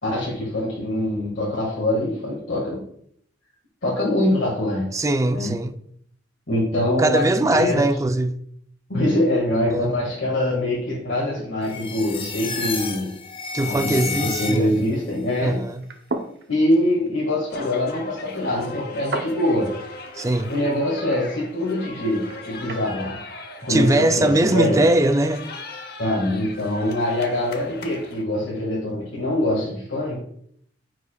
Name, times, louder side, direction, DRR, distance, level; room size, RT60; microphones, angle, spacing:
voice 1, 0.0-2.8 3.8-4.8 5.3-5.5 6.5-7.3 7.6-7.9 8.9-13.1 13.6-15.6 16.5-19.7 20.5-23.2 23.6-24.8 26.0-30.2, left 1 dB, 70° left, 1.7 m, -23 dB
voice 2, 4.9-5.7 7.0-8.4 9.7-9.9 13.5-14.8 15.4-15.8 20.1-20.5 23.7-25.4, right 2 dB, 15° right, 0.3 m, -21 dB
sound 1, 11.6-15.0, left 5 dB, 30° left, 0.6 m, -31 dB
sound 2, 15.7-22.9, right 2 dB, 60° right, 0.7 m, -37 dB
sound 3, 17.5-28.2, left 3 dB, 55° left, 0.8 m, -38 dB
9.3 x 4.8 x 2.2 m
head